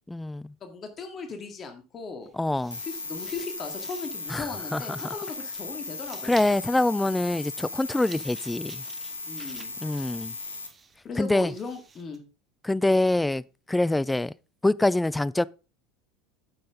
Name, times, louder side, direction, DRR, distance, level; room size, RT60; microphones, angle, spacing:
voice 1, 0.1-0.5 2.3-2.8 4.3-5.0 6.2-8.8 9.8-10.3 11.2-11.5 12.6-13.4 13.7-14.3 14.6-15.5, left 2 dB, 10° left, 0.4 m, -25 dB
voice 2, 0.6-2.3 2.8-6.3 9.3-9.7 11.0-12.2, left 4 dB, 35° left, 2.1 m, -37 dB
sound 1, 2.2-12.2, right 5 dB, 25° right, 1.6 m, -51 dB
sound 2, 2.7-10.7, left 3 dB, 90° left, 1.3 m, -37 dB
9.6 x 7.7 x 3.7 m
hypercardioid pair, 75°, 0 cm